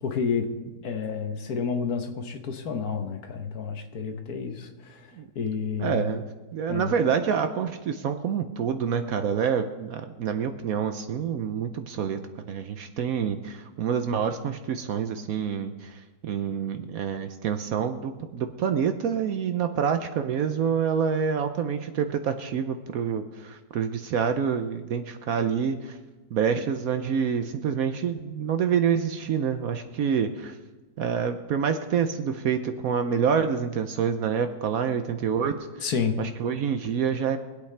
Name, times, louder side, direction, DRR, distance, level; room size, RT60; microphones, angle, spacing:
voice 1, 0.0-0.5 0.8-6.0 6.7-6.9 35.8-36.2, left 6 dB, 60° left, 5 dB, 1.4 m, -30 dB
voice 2, 5.8-12.2 12.5-26.0 26.3-30.6 31.0-35.9 36.2-37.4, right 7 dB, 65° right, 8 dB, 1.0 m, -27 dB
23.5 x 8.3 x 3.3 m, 1.2 s
omnidirectional pair, 1.8 m